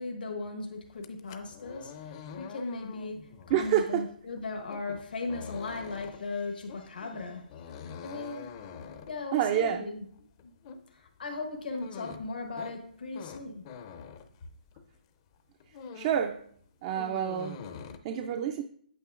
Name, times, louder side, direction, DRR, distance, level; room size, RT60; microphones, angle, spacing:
voice 1, 0.0-8.5 9.1-10.1 10.4-10.5 10.9-13.7, left 3 dB, 75° left, 1.1 m, -38 dB
sound 1, 0.9-15.0 15.3-16.3 16.6-18.0, left 6 dB, 30° left, 0.5 m, -46 dB
voice 2, 3.5-4.0 9.3-9.8 15.9-16.4 16.8-17.6 18.0-18.6, right 10 dB, 30° right, 0.3 m, -28 dB
8.5 x 7.6 x 2.4 m
hypercardioid pair, 155°, 5 cm